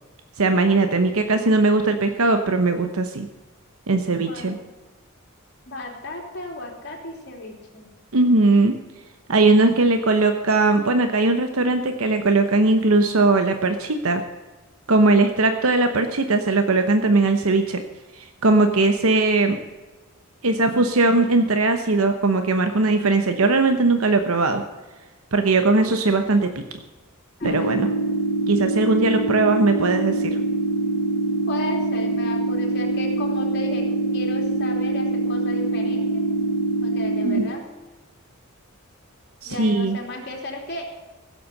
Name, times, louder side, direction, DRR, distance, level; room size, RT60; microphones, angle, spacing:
voice 1, 0.4-3.3 3.9-4.6 8.1-8.7 9.3-14.2 14.9-17.8 18.4-19.6 20.4-24.6 25.3-26.5 27.4-27.9 28.5-30.4 37.2-37.4 39.4-40.0, right 3 dB, 80° right, 7 dB, 1.0 m, -19 dB
voice 2, 4.3-4.6 5.7-7.9 27.4-27.8 31.5-36.3 36.8-37.6 39.4-40.9, left 2 dB, 55° left, 1 dB, 3.2 m, -35 dB
sound 1, 27.4-37.4, right 2 dB, 30° left, 3.0 m, -24 dB
16.5 x 7.7 x 6.7 m, 1.2 s
head